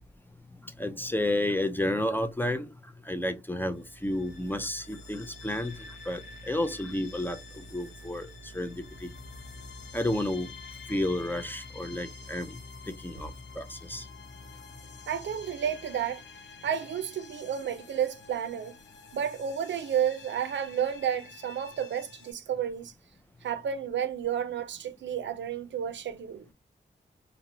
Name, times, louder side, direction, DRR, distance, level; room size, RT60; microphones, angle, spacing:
voice 1, 0.8-2.7 3.1-5.7 6.1-8.7 9.0-9.1 9.9-10.5 10.9-12.6 12.9-14.1, left 1 dB, 10° left, 0.3 m, -31 dB
sound 1, 3.7-22.3, left 3 dB, 75° left, 0.7 m, -47 dB
voice 2, 15.1-16.2 16.6-18.7 19.1-22.9 23.4-26.5, right 9 dB, 80° right, 0.4 m, -31 dB
2.7 x 2.0 x 2.5 m
wide cardioid pair, 125°, 19 cm